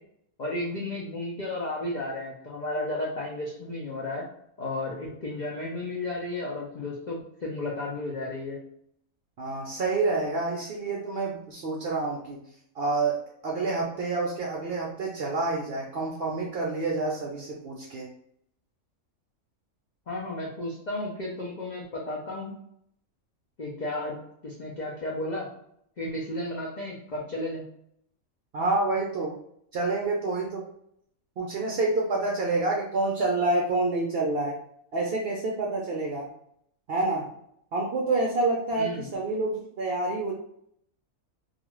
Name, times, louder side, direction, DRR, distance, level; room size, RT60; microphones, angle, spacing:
voice 1, 0.4-4.3 4.6-8.6 20.1-22.6 23.6-25.5 26.0-27.6 38.7-39.1, left 2 dB, 90° left, -4 dB, 0.4 m, -33 dB
voice 2, 9.4-12.4 12.8-18.1 28.5-29.3 29.7-30.6 31.4-34.6 34.9-36.3 36.9-37.3 37.7-40.3, right 3 dB, 65° right, -2 dB, 0.6 m, -28 dB
2.5 x 2.3 x 2.9 m, 0.72 s
omnidirectional pair, 1.5 m